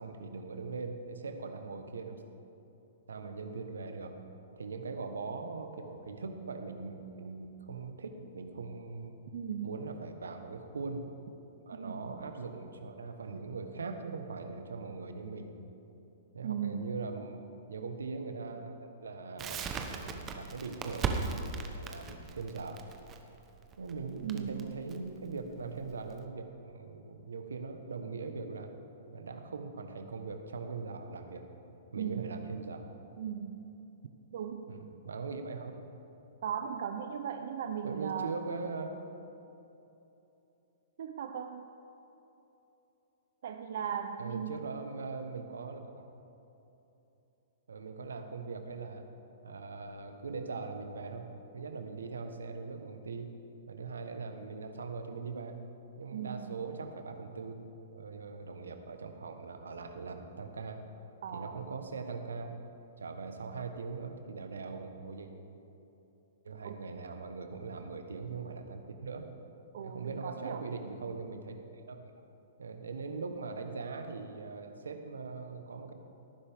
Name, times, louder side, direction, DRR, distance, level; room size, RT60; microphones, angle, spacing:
voice 1, 0.0-2.2 3.1-4.1 4.6-9.2 9.6-11.1 11.7-15.5 16.3-17.4 17.7-22.8 23.8-28.7 29.1-31.4 31.9-32.9 34.7-35.7 37.8-38.9 44.2-45.9 47.7-49.0 49.4-51.3 51.5-53.3 53.7-55.6 56.0-57.5 57.9-60.8 61.3-62.5 63.0-65.3 66.4-69.3 69.8-72.1 72.6-75.9, right 4 dB, 85° right, 6 dB, 1.2 m, -41 dB
voice 2, 9.3-9.8 11.7-12.1 16.4-17.0 24.2-24.8 32.0-32.2 33.2-33.7 34.3-34.7 36.4-38.3 41.0-41.7 43.4-44.6 56.1-56.6 61.2-61.6 66.6-66.8 69.7-70.7, right 8 dB, 65° right, 6 dB, 0.7 m, -37 dB
Crackle, 19.4-26.2, right 5 dB, 25° right, 1.1 m, -38 dB
18.0 x 9.8 x 3.6 m, 3.0 s
hypercardioid pair, 125°, 0 cm